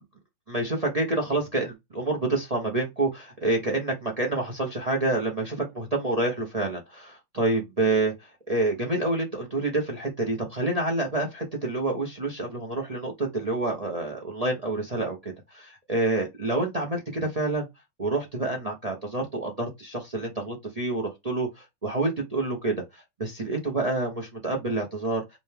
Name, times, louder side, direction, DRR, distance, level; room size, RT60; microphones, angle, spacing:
voice 1, 0.5-17.7 18.0-25.2, right 2 dB, 50° right, 0.4 m, -28 dB
5.0 x 2.3 x 3.3 m
omnidirectional pair, 2.1 m